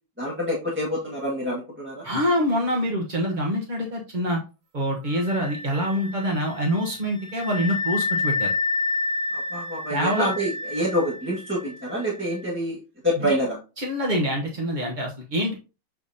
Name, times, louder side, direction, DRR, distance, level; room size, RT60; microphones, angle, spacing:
voice 1, 0.2-2.0 9.3-12.8 13.0-13.6, equal, 5° right, -4 dB, 1.2 m, -27 dB
voice 2, 2.0-4.4 4.7-8.5 9.9-10.3 13.2-13.4 13.8-15.5, equal, 35° right, -1 dB, 0.8 m, -25 dB
Wind instrument woodwind instrument, 5.1-12.5, left 3 dB, 50° right, 1.3 m, -30 dB
6.9 x 5.8 x 2.7 m, 0.31 s
omnidirectional pair, 2.4 m